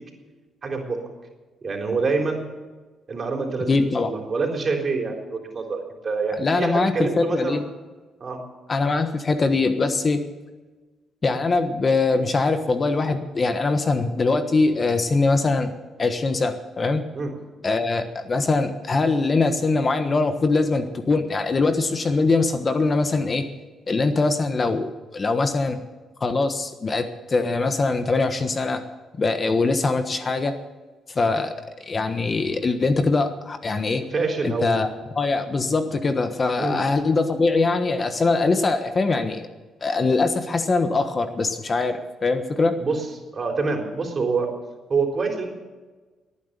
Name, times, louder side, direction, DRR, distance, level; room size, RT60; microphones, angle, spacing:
voice 1, 0.6-1.0 1.6-2.5 3.1-3.8 4.1-7.6 8.2-8.4 17.1-17.3 34.1-34.9 36.6-36.8 42.8-44.5 44.9-45.5, right 4 dB, 40° right, 2 dB, 3.9 m, -26 dB
voice 2, 3.7-4.1 6.4-7.6 8.7-10.2 11.2-15.7 16.0-17.0 17.6-23.5 23.9-24.9 25.1-25.8 26.2-28.8 29.2-30.5 31.1-31.5 31.9-34.0 34.4-34.9 35.1-39.5 39.8-42.8, left 3 dB, 35° left, 8 dB, 1.3 m, -22 dB
19.0 x 9.9 x 6.8 m, 1.3 s
cardioid pair, 90°, 0 cm